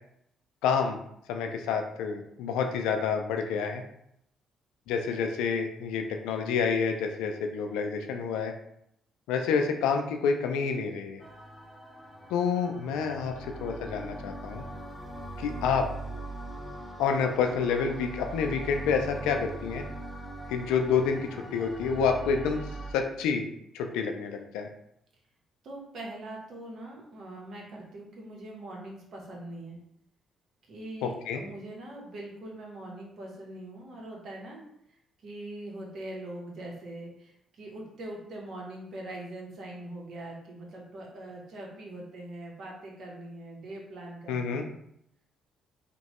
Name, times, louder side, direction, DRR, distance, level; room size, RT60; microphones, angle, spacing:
voice 1, 0.6-1.0 1.3-3.8 4.9-8.5 9.3-11.2 12.3-14.6 15.4-15.9 17.0-19.9 20.5-22.6 22.9-23.5 23.7-24.7 31.0-31.4 44.3-44.6, left 6 dB, 80° left, 4 dB, 0.3 m, -28 dB
sound 1, 11.2-22.9, right 2 dB, 15° left, 0.8 m, -41 dB
voice 2, 25.6-29.8 30.7-34.6 35.2-37.3 37.6-44.6, right 1 dB, 65° right, -2 dB, 0.9 m, -42 dB
2.9 x 2.2 x 2.9 m, 0.75 s
supercardioid pair, 55°, 0 cm